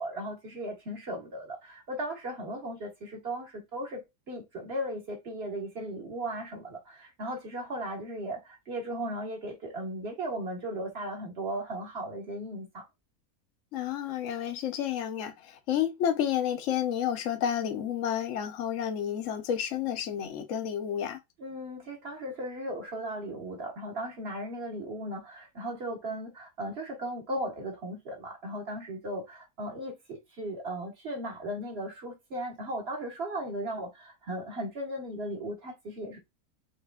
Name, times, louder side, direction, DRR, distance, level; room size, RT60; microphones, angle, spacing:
voice 1, 0.0-12.8 21.4-36.2, right 1 dB, 45° right, 1.5 m, -37 dB
voice 2, 13.7-21.2, left 9 dB, 65° left, 1.1 m, -30 dB
4.9 x 3.2 x 2.3 m
omnidirectional pair, 1.5 m